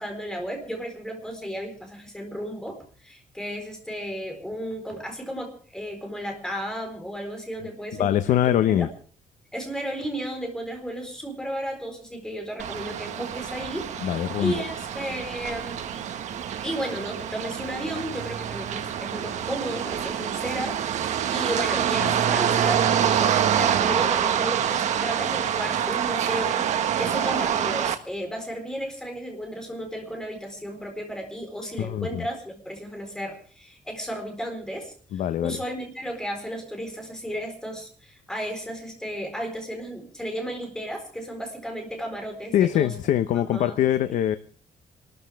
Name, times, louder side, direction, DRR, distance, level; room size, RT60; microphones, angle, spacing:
voice 1, 0.0-8.9 9.5-16.0 16.6-43.0 43.3-43.9, equal, 5° left, 3 dB, 4.3 m, -34 dB
voice 2, 7.9-8.9 14.0-14.6 22.0-22.1 31.8-32.2 35.1-35.6 42.5-44.4, left 11 dB, 75° left, 10 dB, 0.9 m, -23 dB
sound 1, 12.6-28.0, right 9 dB, 65° right, 1.5 m, -26 dB
27.0 x 13.5 x 3.5 m, 0.41 s
cardioid pair, 175°, 13 cm